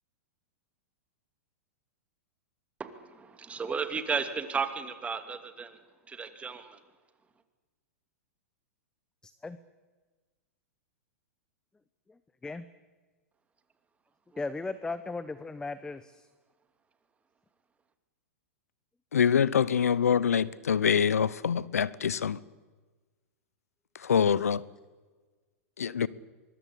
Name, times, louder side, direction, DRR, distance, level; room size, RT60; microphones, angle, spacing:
voice 1, 2.8-5.8 6.1-6.8 14.3-14.4, right 5 dB, 15° right, 9 dB, 2.7 m, -34 dB
voice 2, 9.2-9.6 12.1-12.7 14.4-16.3, left 3 dB, 10° left, 14 dB, 1.0 m, -37 dB
voice 3, 19.1-22.4 24.0-24.6 25.8-26.1, left 7 dB, 85° left, 21 dB, 0.9 m, -25 dB
24.0 x 22.0 x 8.6 m, 1.3 s
hypercardioid pair, 115°, 8 cm